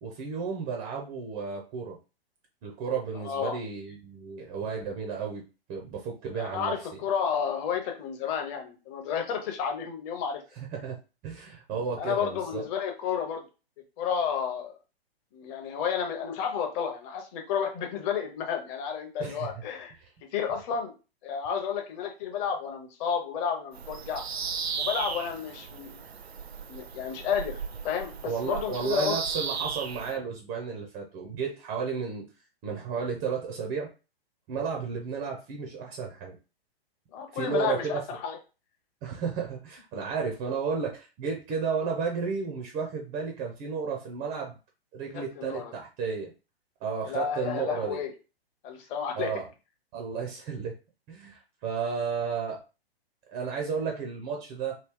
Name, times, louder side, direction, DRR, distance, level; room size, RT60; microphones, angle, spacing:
voice 1, 0.0-2.0 2.6-7.0 10.7-11.0 11.2-12.6 19.2-19.5 28.2-32.3 32.6-33.9 34.5-36.4 37.3-37.9 39.0-44.6 44.9-46.3 46.8-48.0 49.2-49.5 49.9-50.7 51.1-52.6 53.3-54.8, right 5 dB, 15° right, 1 dB, 0.4 m, -33 dB
voice 2, 3.2-3.6 6.3-10.4 12.0-13.4 14.0-14.8 15.3-19.9 20.3-20.9 21.2-24.2 24.8-26.0 26.7-29.1 37.1-38.4 45.1-45.7 47.0-48.1 48.6-49.3, left 7 dB, 25° left, 4 dB, 0.6 m, -31 dB
Bird vocalization bird call bird song, 23.7-30.2, right 6 dB, 85° right, 0.5 m, -36 dB
2.9 x 2.7 x 3.4 m, 0.32 s
figure-of-eight pair, 120°, 31 cm